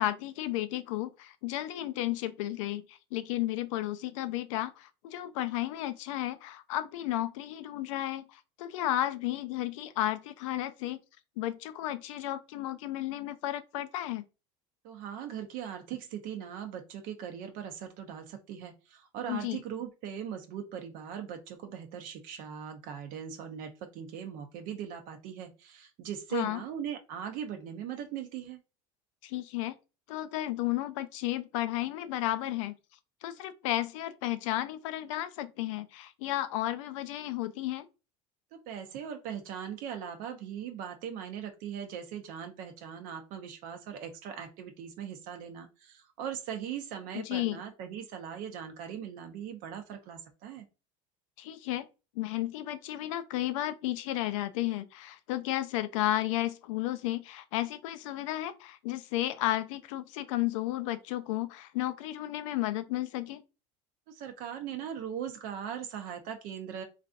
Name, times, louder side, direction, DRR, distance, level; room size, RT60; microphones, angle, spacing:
voice 1, 0.0-11.0 11.4-14.2 19.3-19.6 26.3-26.6 29.2-29.8 30.1-32.8 33.2-37.9 47.2-47.6 51.4-51.9 52.2-63.4, left 14 dB, 90° left, 0.4 m, -33 dB
voice 2, 14.8-28.6 38.5-50.6 64.1-66.8, right 8 dB, 60° right, 0.5 m, -40 dB
3.2 x 2.5 x 2.4 m
supercardioid pair, 125°, 16 cm